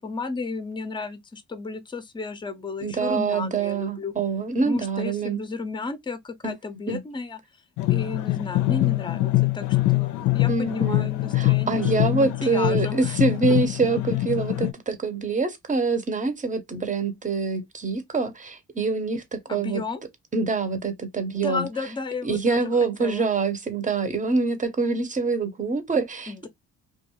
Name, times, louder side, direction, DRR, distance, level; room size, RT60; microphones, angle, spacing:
voice 1, 0.0-4.1 4.6-7.4 7.9-13.2 19.5-20.0 21.3-22.6 23.0-23.3 26.3-26.5, left 3 dB, 15° left, 0.5 m, -33 dB
voice 2, 2.8-5.4 6.4-6.6 6.9-7.0 10.5-19.8 20.3-21.7 22.2-26.5, right 4 dB, 25° right, 0.7 m, -25 dB
sound 1, 7.8-14.7, left 18 dB, 80° left, 0.5 m, -24 dB
2.5 x 2.3 x 2.9 m
cardioid pair, 90°, 30 cm